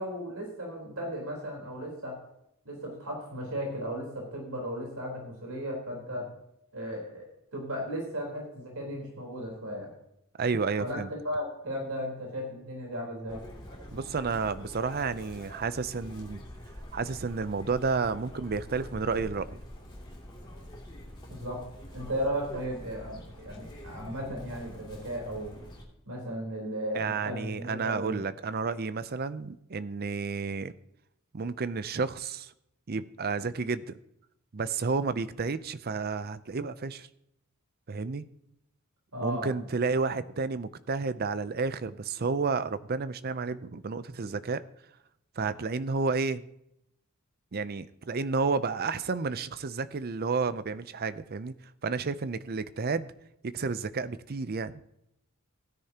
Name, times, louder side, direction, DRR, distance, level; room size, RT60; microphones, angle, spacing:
voice 1, 0.0-2.2 2.7-6.3 6.7-9.9 10.8-13.4 21.3-25.5 26.1-28.2 39.1-39.5, equal, 75° right, 0 dB, 3.9 m, -35 dB
voice 2, 10.4-11.1 13.9-16.4 16.9-19.6 26.9-30.7 31.3-32.5 32.9-33.9 34.5-37.1 37.9-38.2 39.2-44.6 45.4-46.4 47.5-51.5 51.8-53.1 53.4-54.8, right 4 dB, 45° right, 14 dB, 0.5 m, -31 dB
Chirp tweet, 13.3-25.8, equal, 20° left, 2.6 m, -46 dB
16.0 x 10.0 x 2.9 m, 0.79 s
head